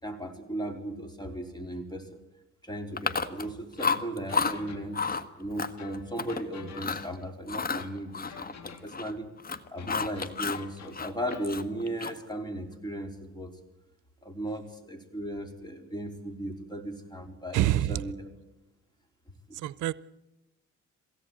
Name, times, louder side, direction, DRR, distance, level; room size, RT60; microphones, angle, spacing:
voice 1, 0.0-2.2 2.6-5.0 5.4-9.3 9.7-13.5 14.2-18.3, right 1 dB, 15° left, 4 dB, 4.1 m, -36 dB
Chewing mastication, 3.0-3.5 3.8-4.5 4.9-5.2 5.6-6.4 6.7-7.1 7.5-9.1 9.4-10.6 10.9-12.3, left 5 dB, 30° left, 1.4 m, -31 dB
sound 1, 3.8-5.2 5.8-7.2 7.8-9.1 9.8-11.6, left 6 dB, 65° left, 2.6 m, -49 dB
voice 2, 17.5-18.0 19.5-19.9, right 14 dB, 85° right, 19 dB, 0.7 m, -26 dB
22.5 x 17.0 x 8.9 m, 1.0 s
cardioid pair, 90°, 30 cm